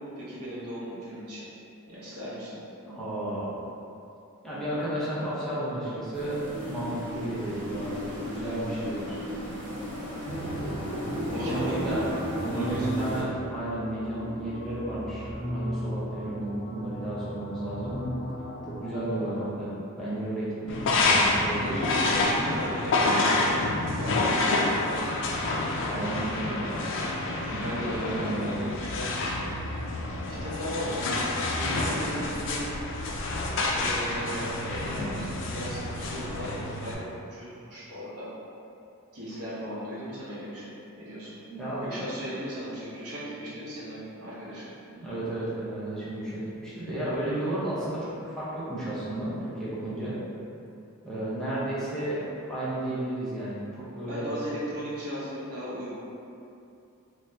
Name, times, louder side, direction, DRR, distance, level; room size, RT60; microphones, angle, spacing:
voice 1, 0.0-1.5 1.9-2.6 11.2-12.1 12.5-13.3 21.5-25.2 27.6-29.4 29.7-29.9 30.3-32.7 33.7-38.3 39.1-41.4 41.8-44.7 54.1-55.9, equal, 80° right, -9 dB, 0.9 m, -37 dB
voice 2, 2.8-3.5 4.4-9.2 11.3-12.0 12.4-18.0 18.7-21.9 25.7-26.7 27.5-28.6 41.5-41.9 44.9-50.1 51.0-54.3, right 1 dB, ahead, -11 dB, 0.6 m, -33 dB
sound 1, 6.1-13.2, left 1 dB, 55° right, 1.0 m, -36 dB
sound 2, 10.2-19.4, equal, 25° left, 1.0 m, -35 dB
sound 3, 20.7-36.9, left 2 dB, 55° left, 0.3 m, -28 dB
2.7 x 2.2 x 3.4 m, 2.7 s
head